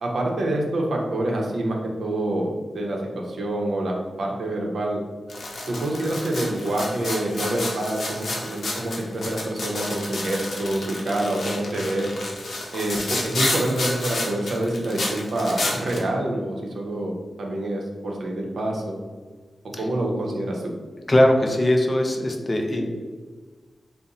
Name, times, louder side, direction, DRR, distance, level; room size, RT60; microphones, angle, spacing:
voice 1, 0.0-5.0 5.7-12.1 12.7-17.1 17.4-19.0 19.8-20.6 22.7-22.9, right 1 dB, 70° right, 0 dB, 0.6 m, -26 dB
sound 1, 5.3-16.0, left 2 dB, 60° left, 0.7 m, -30 dB
voice 2, 21.1-22.9, left 1 dB, 25° left, 2 dB, 0.4 m, -20 dB
3.9 x 2.1 x 3.9 m, 1.4 s
wide cardioid pair, 135°, 0 cm